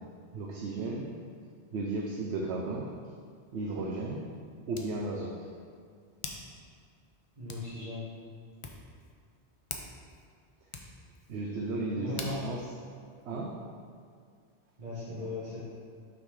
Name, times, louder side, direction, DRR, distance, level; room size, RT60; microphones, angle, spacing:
voice 1, 0.3-1.1 1.7-2.9 3.5-4.2 4.7-5.3 11.3-12.6 13.2-13.5 15.2-15.3, right 2 dB, 75° right, -2 dB, 0.9 m, -34 dB
Hands, 3.1-13.9, left 3 dB, 45° left, 0.4 m, -49 dB
voice 2, 7.4-8.1 11.9-12.3 14.8-15.6, left 2 dB, 40° right, -9 dB, 1.2 m, -38 dB
6.0 x 3.9 x 4.8 m, 2.1 s
omnidirectional pair, 1.1 m